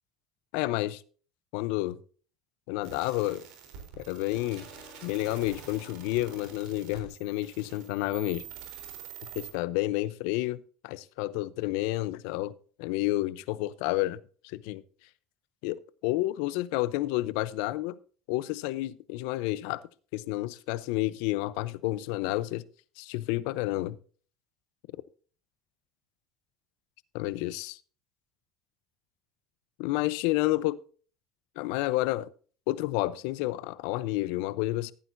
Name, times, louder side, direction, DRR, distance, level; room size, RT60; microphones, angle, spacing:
voice 1, 0.5-1.0 1.5-2.0 2.7-3.4 4.0-4.7 5.0-8.4 9.4-12.5 12.8-14.2 14.4-14.8 15.6-18.0 18.3-19.8 20.1-22.6 23.0-24.0 27.1-27.8 29.8-30.8 31.6-32.3 32.7-34.9, left 17 dB, 80° left, 0.7 m, -30 dB
sound 1, 2.8-9.5, right 7 dB, 80° right, 3.8 m, -46 dB
15.5 x 9.1 x 2.7 m
supercardioid pair, 105°, 0 cm